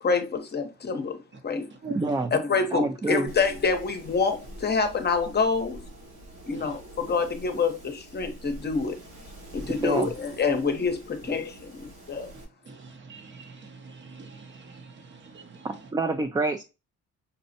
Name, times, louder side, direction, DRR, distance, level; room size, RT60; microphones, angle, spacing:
voice 1, 0.0-1.7 2.3-5.8 6.5-9.0 9.5-12.3, left 4 dB, 35° left, 0.8 m, -27 dB
voice 2, 1.9-2.3 2.7-3.3 9.8-10.1 15.6-16.6, right 3 dB, 15° right, 0.3 m, -27 dB
Wind, 3.3-12.4, right 1 dB, 80° right, 1.8 m, -45 dB
voice 3, 12.3-15.7, right 3 dB, 40° right, 0.8 m, -44 dB
5.4 x 2.0 x 2.7 m
cardioid pair, 90°, 30 cm